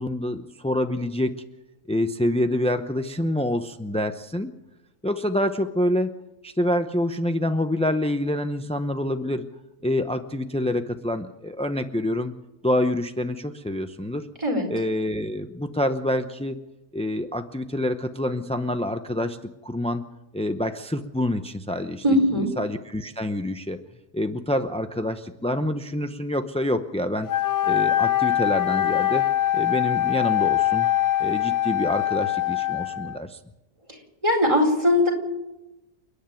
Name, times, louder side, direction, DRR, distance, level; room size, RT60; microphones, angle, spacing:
voice 1, 0.0-1.3 1.9-4.5 5.0-6.1 6.4-9.5 9.8-12.3 12.6-14.3 14.7-16.6 16.9-19.4 19.6-20.0 20.3-22.0 22.6-23.8 24.1-27.3 27.6-29.3 29.5-30.9 31.2-33.4, left 1 dB, 10° left, 7 dB, 0.4 m, -26 dB
voice 2, 22.0-22.5 33.9-34.0 34.2-35.1, left 1 dB, 20° right, 1 dB, 4.9 m, -20 dB
Wind instrument woodwind instrument, 27.3-33.2, left 12 dB, 55° left, 1.2 m, -23 dB
29.0 x 10.0 x 9.1 m, 0.98 s
omnidirectional pair, 1.6 m